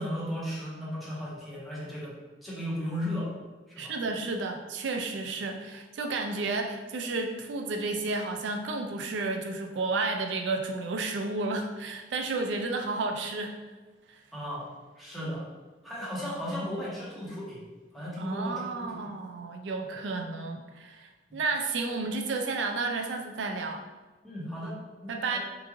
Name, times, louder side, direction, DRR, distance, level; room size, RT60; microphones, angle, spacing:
voice 1, 0.0-2.1 2.4-3.3 3.7-3.9 14.3-14.7 15.0-15.5 15.8-17.6 17.9-19.1 21.3-21.4 24.2-25.4, equal, ahead, -8 dB, 1.0 m, -35 dB
voice 2, 3.8-13.6 18.2-23.8 25.1-25.4, right 3 dB, 85° right, 4 dB, 0.4 m, -32 dB
3.0 x 2.5 x 3.6 m, 1.2 s
head